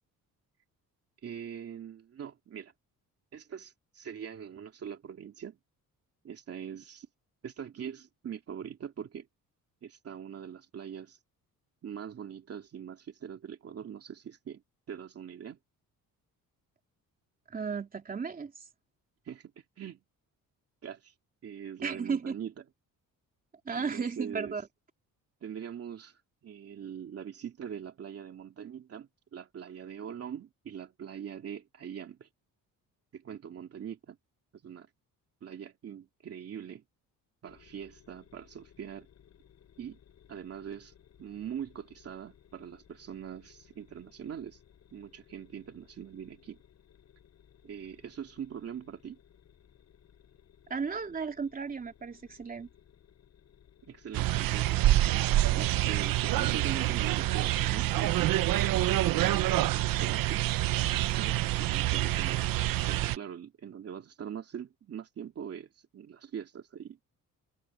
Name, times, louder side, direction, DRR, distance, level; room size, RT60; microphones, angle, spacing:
voice 1, 1.2-2.7 3.3-5.6 6.2-7.1 7.4-9.3 9.8-11.2 11.8-14.6 14.9-15.6 19.2-20.0 20.8-21.1 21.4-22.5 23.7-24.5 25.4-32.3 33.1-34.2 34.6-34.9 35.4-36.8 37.4-39.1 39.8-40.0 40.3-40.9 41.2-44.6 44.9-46.6 47.6-49.2 53.8-54.9 55.5-60.4 61.1-62.6 62.9-67.1, right 8 dB, 45° right, 2.7 m, -42 dB
voice 2, 17.5-18.6 21.8-22.4 23.6-24.7 50.7-52.7, right 5 dB, 25° right, 3.0 m, -34 dB
sound 1, 37.5-55.8, left 9 dB, 50° left, 8.0 m, -61 dB
sound 2, 54.1-63.2, right 15 dB, 75° right, 0.9 m, -27 dB
cardioid pair, 160°, 34 cm